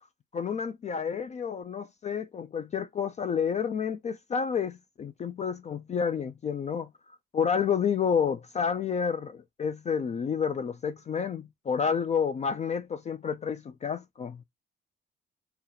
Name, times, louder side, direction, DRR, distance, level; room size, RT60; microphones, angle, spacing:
voice 1, 0.3-6.9 7.3-14.4, left 6 dB, 35° left, 0.4 m, -30 dB
2.8 x 2.8 x 3.9 m
cardioid pair, 90°, 20 cm